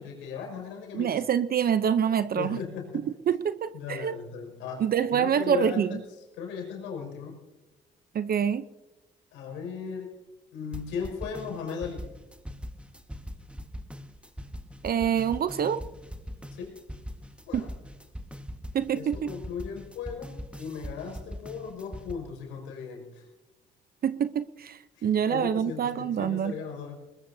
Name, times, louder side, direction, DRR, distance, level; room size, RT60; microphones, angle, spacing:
voice 1, 0.0-1.2 2.3-3.1 3.7-6.0 6.3-7.4 9.3-10.1 10.5-12.1 16.5-16.7 17.5-17.7 18.9-23.3 25.0-27.0, left 6 dB, 85° left, 1 dB, 5.6 m, -37 dB
voice 2, 0.9-2.6 3.3-4.1 4.8-5.9 8.1-8.6 14.8-15.8 17.5-17.6 18.7-19.3 24.0-26.5, right 8 dB, 55° right, 13 dB, 0.8 m, -26 dB
sound 1, 10.7-22.1, equal, 5° right, 1.6 m, -41 dB
22.0 x 20.5 x 2.8 m, 1.0 s
supercardioid pair, 60°, 19 cm